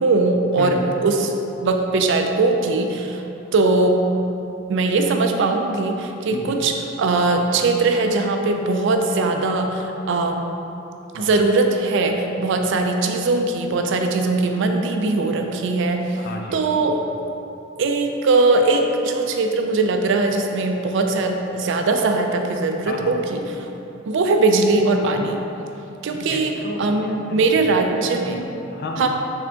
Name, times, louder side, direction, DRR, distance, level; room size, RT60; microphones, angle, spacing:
voice 1, 0.0-1.3 1.6-3.2 3.5-4.0 4.7-6.7 7.0-10.4 11.1-16.1 16.5-17.0 17.8-23.7 24.1-25.4 26.0-26.5 26.8-28.4 29.0-29.1, right 3 dB, 65° right, 4 dB, 0.4 m, -20 dB
voice 2, 0.6-0.9 6.3-6.7 11.2-11.3 16.2-17.0 22.9-23.2 26.1-27.4 27.9-29.1, left 2 dB, 50° left, 1 dB, 0.4 m, -33 dB
4.1 x 3.6 x 2.8 m, 2.8 s
head